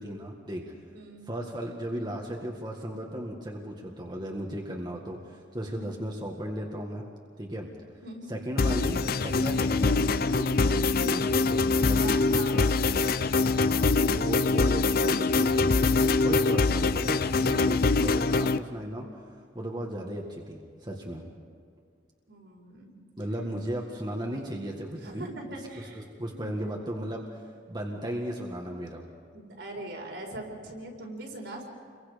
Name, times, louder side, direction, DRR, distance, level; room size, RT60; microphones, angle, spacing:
voice 1, 0.0-0.7 1.2-7.0 7.4-7.7 8.3-12.2 12.5-13.0 13.4-15.9 16.2-19.1 19.5-21.3 23.2-25.3 25.9-27.4 27.7-29.1, equal, 25° right, 0 dB, 1.7 m, -36 dB
voice 2, 0.9-1.3 5.7-5.9 8.0-8.3 11.9-12.8 16.2-16.5 22.3-23.0 25.0-26.8 29.3-31.6, right 1 dB, 70° right, 0 dB, 4.6 m, -41 dB
sound 1, 8.6-18.6, left 3 dB, 55° left, 0.6 m, -24 dB
29.0 x 23.0 x 5.2 m, 2.1 s
head